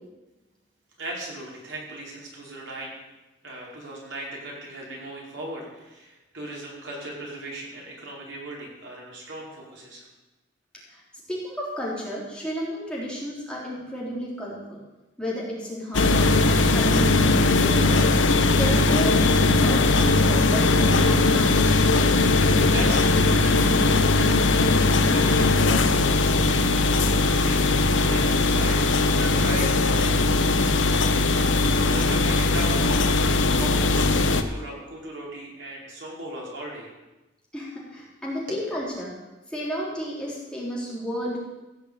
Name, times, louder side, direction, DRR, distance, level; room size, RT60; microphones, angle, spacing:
voice 1, 1.0-2.9 3.4-10.1 22.7-23.8 24.9-31.4 31.8-33.0 33.6-34.0 34.3-36.9 38.5-38.6, right 1 dB, 80° right, -3 dB, 4.9 m, -37 dB
voice 2, 11.3-14.8 15.2-17.8 18.6-21.7 37.5-39.1 39.5-41.4, equal, 5° left, -5 dB, 3.3 m, -32 dB
sound 1, 15.9-34.4, left 3 dB, 85° left, 1.0 m, -20 dB
16.0 x 6.6 x 8.3 m, 1.1 s
head